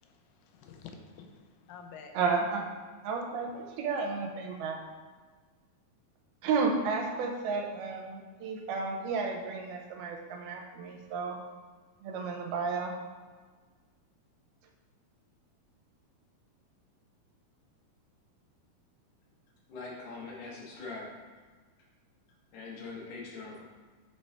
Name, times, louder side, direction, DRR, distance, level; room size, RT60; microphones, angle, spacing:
voice 1, 0.0-2.2, left 6 dB, 85° left, 4 dB, 2.6 m, -50 dB
voice 2, 2.1-2.6 3.0-4.8 6.4-11.4 12.0-12.9, right 4 dB, 85° right, 0 dB, 2.6 m, -32 dB
voice 3, 19.7-21.2 22.5-23.6, left 3 dB, 65° left, -4 dB, 2.5 m, -42 dB
8.0 x 3.4 x 4.2 m, 1.4 s
omnidirectional pair, 4.4 m